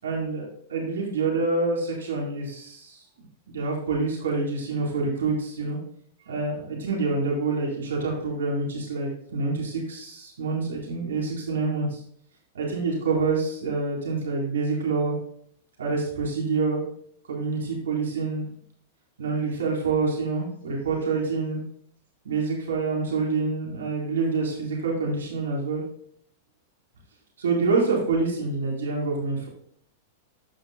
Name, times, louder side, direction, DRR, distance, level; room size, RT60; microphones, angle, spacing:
voice 1, 0.0-3.0 3.5-5.8 6.3-12.0 12.5-15.1 15.8-16.8 17.3-18.4 19.2-21.6 22.2-25.8 27.4-29.5, right 4 dB, 90° right, -2 dB, 4.0 m, -27 dB
15.5 x 5.9 x 2.2 m, 0.63 s
hypercardioid pair, 115°, 0 cm